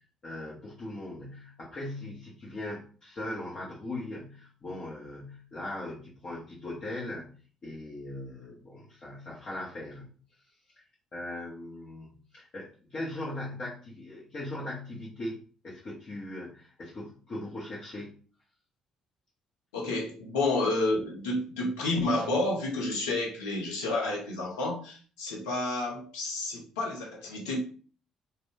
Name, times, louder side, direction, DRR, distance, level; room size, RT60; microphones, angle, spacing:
voice 1, 0.2-7.4 7.6-10.1 10.8-10.9 11.1-15.4 15.6-18.1, left 1 dB, 45° left, -6 dB, 1.0 m, -39 dB
voice 2, 19.7-27.6, left 2 dB, 75° left, -1 dB, 0.7 m, -30 dB
2.5 x 2.2 x 3.6 m, 0.40 s
hypercardioid pair, 45°, 2 cm